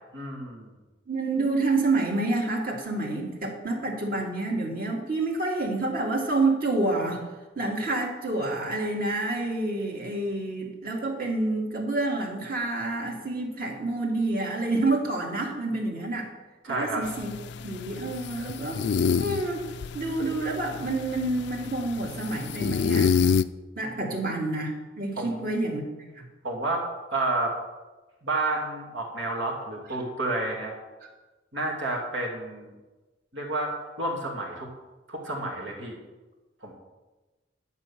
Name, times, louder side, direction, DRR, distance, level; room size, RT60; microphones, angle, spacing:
voice 1, 0.1-0.7 16.6-17.0 24.0-24.2 25.2-25.5 26.4-26.8 27.1-27.5 28.2-30.8 31.5-32.7 33.3-33.7 34.0-34.7 35.1-36.0 36.6-36.7, right 2 dB, 90° right, -1 dB, 2.5 m, -30 dB
voice 2, 1.1-7.2 7.6-16.3 16.7-17.3 17.6-18.8 19.2-19.7 19.9-23.3 23.8-26.2, right 2 dB, 55° right, 0 dB, 2.1 m, -28 dB
sound 1, 17.0-23.4, left 6 dB, 65° left, 0.3 m, -28 dB
10.5 x 5.4 x 7.1 m, 1.2 s
head